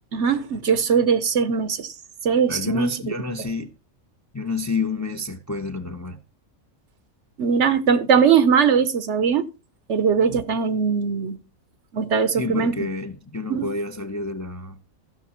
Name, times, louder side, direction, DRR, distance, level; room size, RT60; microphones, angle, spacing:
voice 1, 0.1-1.9 2.2-2.9 7.4-9.5 9.9-11.4 11.9-12.8 13.5-13.7, right 6 dB, 60° right, 1.0 m, -20 dB
voice 2, 2.5-3.7 4.3-6.2 12.3-14.8, left 3 dB, 15° left, 0.6 m, -29 dB
15.0 x 6.5 x 4.2 m
omnidirectional pair, 1.5 m